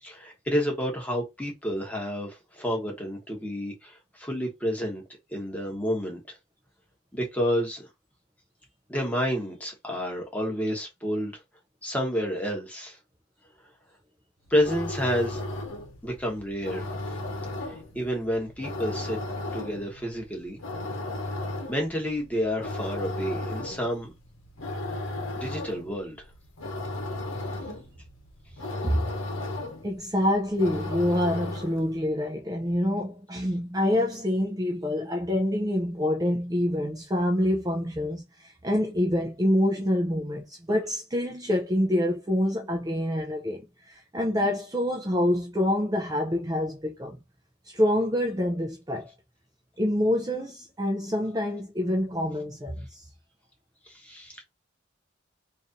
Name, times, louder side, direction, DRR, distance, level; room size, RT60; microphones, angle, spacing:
voice 1, 0.0-5.0 5.3-6.3 7.1-7.9 8.9-11.4 11.8-13.0 14.5-15.4 16.0-16.9 17.6-19.2 19.5-20.6 21.7-24.1 25.3-26.2 53.9-54.4, equal, 5° left, 1.1 m, -30 dB
sound 1, 14.5-32.0, left 2 dB, 90° left, 0.9 m, -35 dB
voice 2, 29.8-47.2 47.7-49.1 49.8-53.0, left 1 dB, 20° right, 0.6 m, -26 dB
3.2 x 2.7 x 3.8 m
head